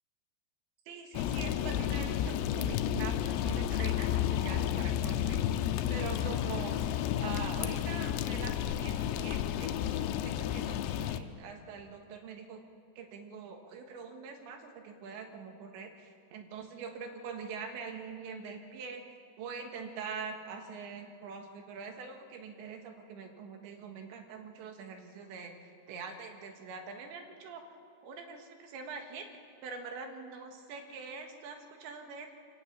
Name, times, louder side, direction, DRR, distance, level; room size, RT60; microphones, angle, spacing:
voice 1, 0.9-5.4 5.9-6.8 7.2-12.6 13.0-19.0 19.4-27.6 28.0-29.3 29.6-32.3, right 5 dB, 85° right, 4 dB, 3.9 m, -44 dB
sound 1, 1.1-11.2, left 10 dB, 80° left, 2.9 m, -31 dB
25.0 x 17.0 x 7.3 m, 2.2 s
omnidirectional pair, 5.1 m